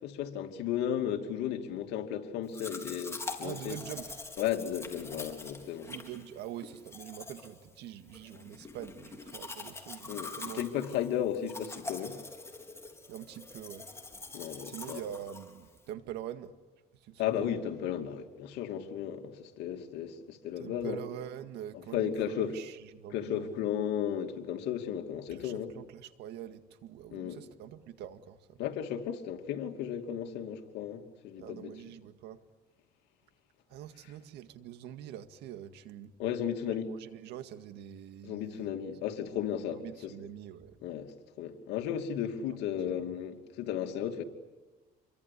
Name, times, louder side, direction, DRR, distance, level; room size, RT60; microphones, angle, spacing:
voice 1, 0.0-3.8 4.4-5.9 10.1-12.2 14.3-15.0 17.2-21.0 21.9-22.5 23.1-25.7 27.1-27.4 28.6-31.7 36.2-36.9 38.2-40.1 40.8-44.2, left 9 dB, 85° left, 2.7 m, -34 dB
Domestic sounds home sounds, 2.5-15.9, left 3 dB, 15° left, 4.1 m, -45 dB
voice 2, 3.4-4.2 5.9-10.7 13.1-13.9 14.6-16.6 17.0-17.5 20.6-23.6 25.3-28.6 31.4-32.4 33.7-36.1 36.9-38.8 39.7-40.8 42.5-42.6 42.9-43.1, right 10 dB, 85° right, 2.0 m, -44 dB
28.0 x 23.0 x 8.6 m
cardioid pair, 110°, 17 cm